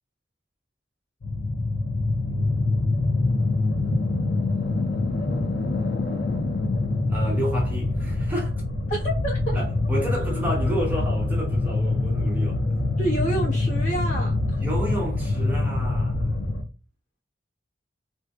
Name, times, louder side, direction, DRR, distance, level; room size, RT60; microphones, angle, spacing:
sound 1, 1.2-16.6, left 2 dB, 75° left, 0.6 m, -25 dB
voice 1, 2.2-2.6 7.1-8.5 9.5-12.6 14.6-16.3, equal, 10° right, 0.8 m, -30 dB
voice 2, 8.9-9.6 13.0-14.6, right 1 dB, 45° left, 1.4 m, -29 dB
3.5 x 2.6 x 2.3 m
head